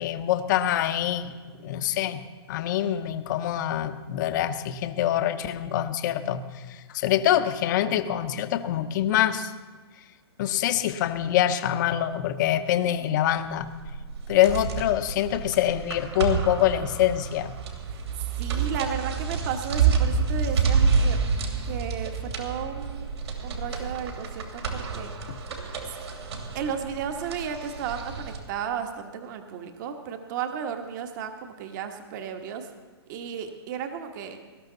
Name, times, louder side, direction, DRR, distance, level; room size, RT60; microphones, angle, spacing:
voice 1, 0.0-1.3 1.6-2.2 2.5-9.5 10.4-13.7 14.3-17.5 25.3-25.4, left 11 dB, 45° left, 10 dB, 0.9 m, -25 dB
voice 2, 12.8-13.2 17.9-21.2 21.7-23.1 23.4-25.1 26.5-32.7 33.1-34.4, right 7 dB, 45° right, 6 dB, 1.4 m, -34 dB
sound 1, 13.6-28.4, right 5 dB, 75° right, 3.0 m, -28 dB
19.5 x 12.5 x 4.0 m, 1.4 s
hypercardioid pair, 140°, 14 cm